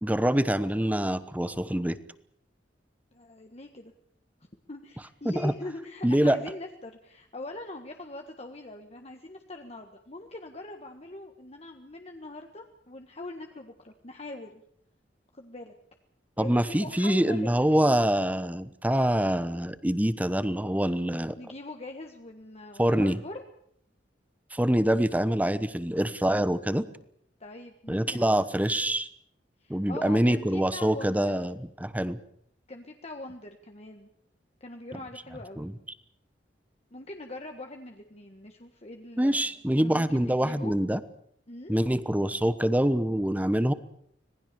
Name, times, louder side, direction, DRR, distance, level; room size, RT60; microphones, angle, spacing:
voice 1, 0.0-2.0 5.2-5.5 6.0-6.4 16.4-21.4 22.8-23.2 24.5-26.9 27.9-29.1 29.7-32.2 35.6-35.7 39.2-41.0 41.7-43.7, right 1 dB, 10° right, 14 dB, 1.1 m, -25 dB
voice 2, 3.1-3.9 4.7-14.6 15.3-15.7 16.4-17.6 21.4-23.4 27.4-28.5 29.6-31.3 32.7-34.1 34.6-35.7 36.9-40.7 41.5-41.7, left 2 dB, 35° left, 4 dB, 1.6 m, -42 dB
26.0 x 19.5 x 7.0 m, 0.68 s
head